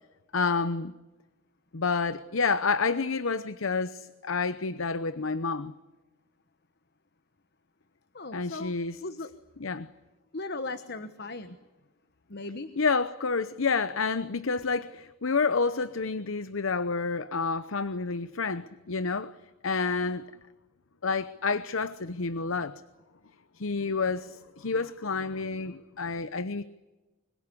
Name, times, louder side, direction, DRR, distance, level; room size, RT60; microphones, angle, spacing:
voice 1, 0.3-0.9 1.7-5.7 8.3-9.0 9.6-9.9 12.8-19.3 19.6-20.2 21.0-22.8 23.6-26.6, left 4 dB, 70° left, 0.9 m, -29 dB
voice 2, 8.1-8.7 9.0-9.3 10.3-11.6 12.3-12.7, left 2 dB, 50° left, 1.2 m, -37 dB
25.5 x 22.0 x 9.8 m
head